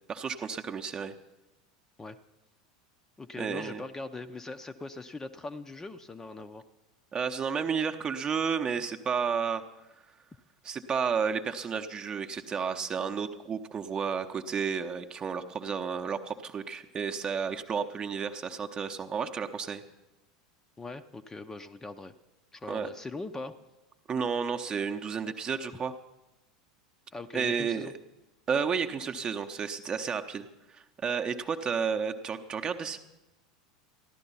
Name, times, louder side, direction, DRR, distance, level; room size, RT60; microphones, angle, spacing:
voice 1, 0.1-1.1 3.4-3.8 7.1-9.6 10.6-19.8 22.7-22.9 24.1-25.9 27.3-27.9 28.5-30.5 30.7-33.0, right 6 dB, 25° right, 7 dB, 0.8 m, -32 dB
voice 2, 3.2-6.6 20.8-22.1 22.5-23.5 27.1-27.9, left 3 dB, 15° left, 9 dB, 0.6 m, -41 dB
14.5 x 11.5 x 5.6 m, 1.0 s
figure-of-eight pair, 80°, 3 cm